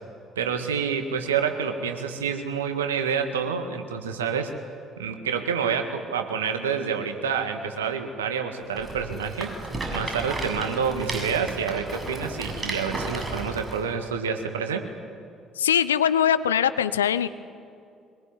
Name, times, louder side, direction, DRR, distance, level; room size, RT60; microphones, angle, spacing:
voice 1, 0.3-4.5 5.0-9.5 9.9-14.8, right 6 dB, 80° right, 6 dB, 1.8 m, -28 dB
Rattle, 8.7-13.8, right 2 dB, 25° right, 7.8 m, -33 dB
voice 2, 15.6-17.3, left 9 dB, 80° left, 14 dB, 0.6 m, -22 dB
23.0 x 21.5 x 9.8 m, 2.4 s
figure-of-eight pair, 50°, 0 cm